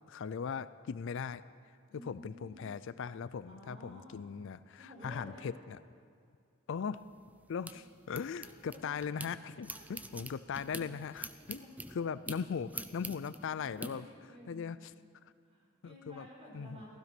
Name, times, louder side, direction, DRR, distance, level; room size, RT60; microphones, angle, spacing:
voice 1, 0.1-1.4 2.0-5.8 6.7-7.0 7.5-11.6 11.9-14.1 14.5-14.9 15.8-16.3 16.5-17.0, left 6 dB, 65° left, 16 dB, 0.4 m, -39 dB
voice 2, 1.9-2.7 3.5-4.2 4.8-5.5 8.3-8.8 9.7-9.9 11.0-12.0 13.5-14.7 15.4-17.0, equal, 30° right, -4 dB, 5.1 m, -53 dB
sound 1, 7.0-9.3 9.6-13.9, right 2 dB, 5° right, 0.6 m, -45 dB
15.5 x 15.0 x 6.0 m, 2.3 s
head